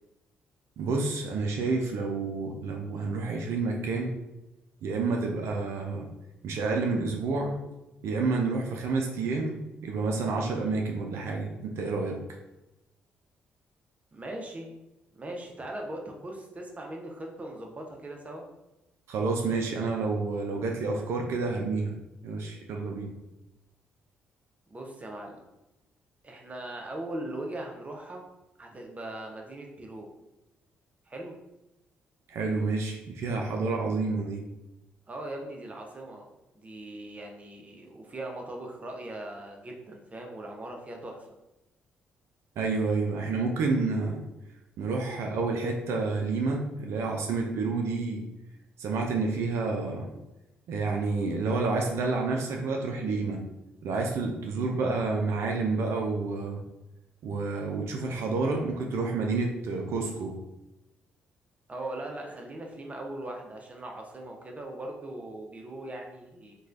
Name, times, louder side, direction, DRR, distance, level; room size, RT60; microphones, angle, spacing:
voice 1, 0.8-4.1 4.8-6.1 6.4-7.6 8.0-12.2 19.1-21.9 22.2-23.1 32.3-34.4 42.6-44.2 44.8-48.2 48.8-50.1 50.7-53.4 53.8-56.6 57.2-60.4, right 3 dB, 65° right, 1 dB, 0.4 m, -29 dB
voice 2, 14.1-14.7 15.1-18.5 24.7-25.4 26.2-28.2 28.6-30.1 31.1-31.4 35.1-36.3 36.5-41.3 61.7-66.6, right 1 dB, 30° right, 1 dB, 0.7 m, -40 dB
3.0 x 2.2 x 2.5 m, 0.95 s
hypercardioid pair, 45°, 5 cm